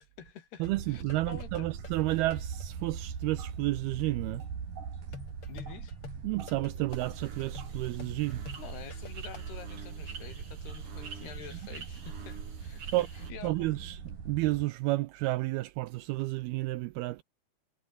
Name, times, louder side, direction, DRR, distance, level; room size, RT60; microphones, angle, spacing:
voice 1, 0.0-1.0 1.3-1.7 5.5-5.9 8.6-13.7, left 9 dB, 70° left, 4.7 m, -48 dB
sound 1, 0.6-2.7 5.1-9.5, left 5 dB, 35° left, 3.6 m, -48 dB
sound 2, 0.6-14.6, right 6 dB, 50° right, 4.9 m, -41 dB
voice 2, 0.6-4.5 6.2-8.4 12.9-13.1 13.4-17.2, right 19 dB, 80° right, 2.3 m, -31 dB
sound 3, 6.9-13.3, right 5 dB, 35° right, 3.8 m, -49 dB
omnidirectional pair, 4.9 m